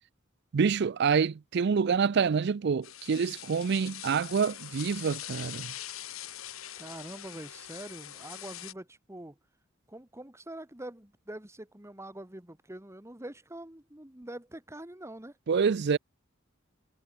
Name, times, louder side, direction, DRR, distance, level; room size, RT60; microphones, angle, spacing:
voice 1, 0.5-5.7 15.5-16.0, right 6 dB, 55° right, 0.4 m, -27 dB
sound 1, 2.8-8.7, left 12 dB, 85° left, 2.5 m, -43 dB
voice 2, 6.8-9.4 9.9-15.4, right 1 dB, 15° right, 1.6 m, -44 dB
head